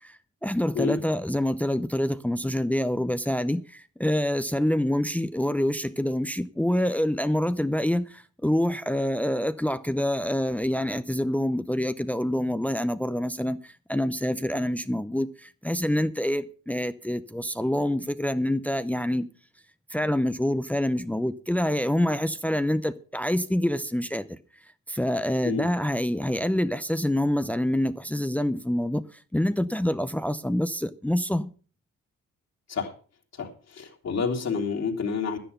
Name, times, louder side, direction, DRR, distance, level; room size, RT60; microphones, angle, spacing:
voice 1, 0.0-19.3 19.9-24.4 24.9-29.0 29.3-31.5, left 1 dB, 5° left, 0.7 m, -26 dB
voice 2, 33.4-35.4, left 5 dB, 60° left, 3.2 m, -29 dB
11.5 x 10.0 x 5.6 m
cardioid pair, 90°, 30 cm